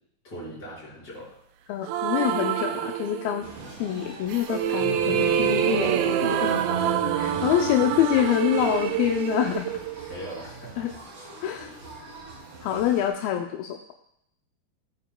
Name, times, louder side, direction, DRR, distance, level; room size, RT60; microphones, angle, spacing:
voice 1, 0.2-1.3 7.3-8.1 10.1-10.9, right 1 dB, 25° left, -7 dB, 5.1 m, -39 dB
voice 2, 1.7-3.5 3.8-6.6 7.2-9.7 10.8-10.9 11.4-11.7 12.6-13.8, left 11 dB, 80° left, 3 dB, 2.4 m, -26 dB
sound 1, 1.9-3.6 4.3-10.4, right 10 dB, 85° right, 2.3 m, -26 dB
sound 2, 3.4-13.1, right 2 dB, 55° right, 4.2 m, -43 dB
sound 3, 4.7-8.4, right 1 dB, 10° right, 3.6 m, -35 dB
17.5 x 8.9 x 2.2 m, 0.75 s
omnidirectional pair, 4.3 m